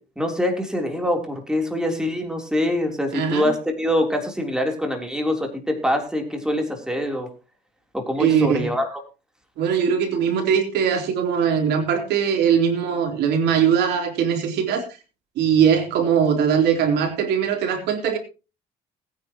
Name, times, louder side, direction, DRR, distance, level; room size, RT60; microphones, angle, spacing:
voice 1, 0.0-7.3 7.9-9.0, left 1 dB, 5° right, 3 dB, 3.5 m, -24 dB
voice 2, 3.1-3.5 8.2-8.7 9.6-14.9 15.4-18.2, right 7 dB, 80° right, 4 dB, 3.6 m, -21 dB
20.5 x 9.6 x 3.0 m, 0.31 s
cardioid pair, 110°, 17 cm